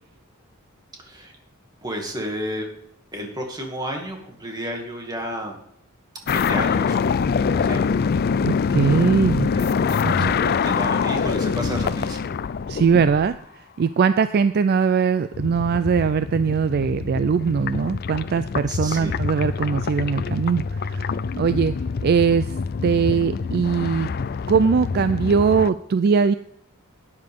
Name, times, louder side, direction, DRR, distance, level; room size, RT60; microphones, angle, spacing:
voice 1, 1.0-1.3 1.8-2.7 3.1-5.6 6.3-7.0 7.6-7.8 9.5-12.3 18.7-19.2, equal, 20° right, 1 dB, 2.3 m, -32 dB
The Story of Universe - Chromones(Javi & Albin), 6.3-13.4 15.3-25.7, left 5 dB, 45° left, 0.4 m, -25 dB
voice 2, 8.4-9.5 10.0-10.3 12.7-13.4 13.8-21.7 22.0-22.6 22.8-24.1 24.5-26.3, right 6 dB, 50° right, 13 dB, 0.3 m, -21 dB
12.5 x 9.6 x 3.6 m, 0.72 s
head